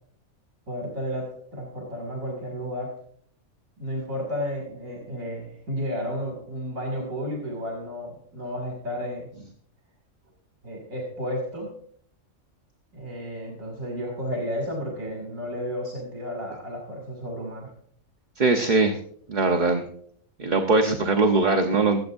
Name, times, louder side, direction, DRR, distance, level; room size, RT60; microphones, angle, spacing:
voice 1, 0.7-3.0 3.8-9.3 10.6-11.7 12.9-17.7, equal, 70° right, 0 dB, 3.0 m, -32 dB
voice 2, 18.4-19.0 19.3-19.8 20.4-22.0, right 3 dB, 35° right, 3 dB, 1.1 m, -21 dB
24.0 x 8.5 x 2.6 m, 0.62 s
omnidirectional pair, 1.4 m